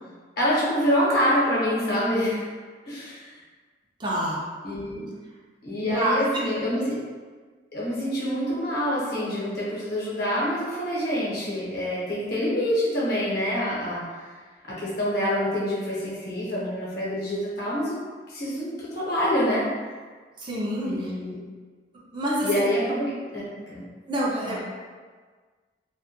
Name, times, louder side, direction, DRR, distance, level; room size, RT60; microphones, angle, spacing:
voice 1, 0.4-2.5 2.9-3.3 4.6-5.1 5.6-7.0 7.7-14.0 14.7-18.0 18.3-19.7 20.8-21.3 22.4-23.8 24.4-24.6, equal, 60° left, -7 dB, 0.8 m, -26 dB
voice 2, 4.0-4.4 5.8-6.2 20.4-21.1 22.1-22.6 24.1-24.7, right 1 dB, 25° right, -5 dB, 0.4 m, -27 dB
2.1 x 2.1 x 2.8 m, 1.5 s
head